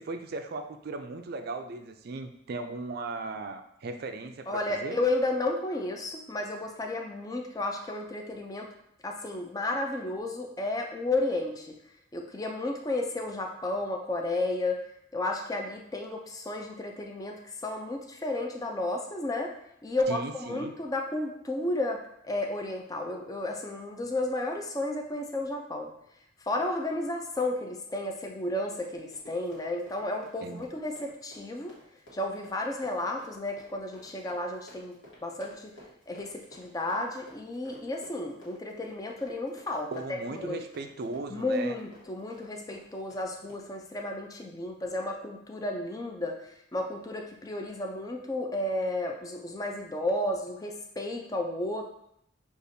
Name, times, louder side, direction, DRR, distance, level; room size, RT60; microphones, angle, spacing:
voice 1, 0.0-5.0 20.1-20.7 30.4-30.7 39.9-41.8, right 3 dB, 50° right, 7 dB, 0.3 m, -37 dB
voice 2, 4.5-8.7 9.0-11.8 12.1-14.8 15.1-19.5 19.8-25.9 26.4-31.7 32.1-35.8 36.1-39.9 40.3-40.6 41.3-51.8, left 2 dB, 20° left, 2 dB, 0.4 m, -32 dB
Run, 28.4-43.7, equal, 65° left, 1.3 m, -54 dB
6.6 x 2.5 x 2.6 m, 0.76 s
head